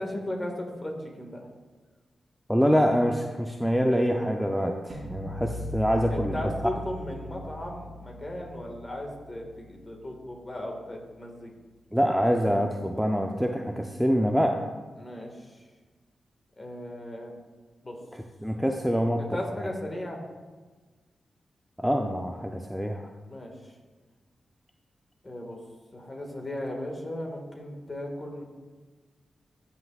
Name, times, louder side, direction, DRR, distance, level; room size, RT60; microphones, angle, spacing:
voice 1, 0.0-1.5 6.1-11.5 15.0-15.6 16.6-17.3 17.8-18.0 19.2-20.2 23.3-23.7 25.2-25.6 25.9-28.4, left 1 dB, 30° left, 1 dB, 1.7 m, -36 dB
voice 2, 2.5-6.4 11.9-14.6 18.4-19.2 19.6-19.7 21.8-23.1, equal, ahead, 2 dB, 0.5 m, -25 dB
sound 1, 4.9-10.9, left 1 dB, 65° right, 1.8 m, -40 dB
13.5 x 5.7 x 2.4 m, 1.4 s
cardioid pair, 75°, 0 cm